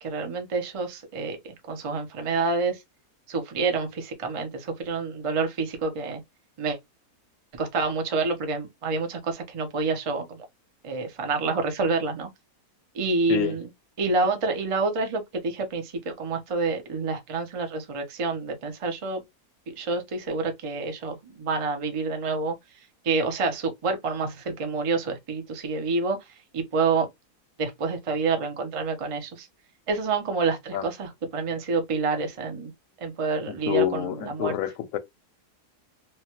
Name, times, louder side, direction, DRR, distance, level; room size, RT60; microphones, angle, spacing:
voice 1, 0.0-2.8 3.3-6.2 6.6-6.8 7.5-10.4 10.8-12.3 12.9-13.7 14.0-19.2 19.7-22.6 23.0-26.3 26.5-27.1 27.6-29.5 29.9-32.7 33.0-34.6, right 4 dB, 60° right, 0.3 m, -28 dB
voice 2, 33.5-35.0, left 11 dB, 70° left, 0.9 m, -27 dB
3.1 x 2.2 x 2.9 m
omnidirectional pair, 1.7 m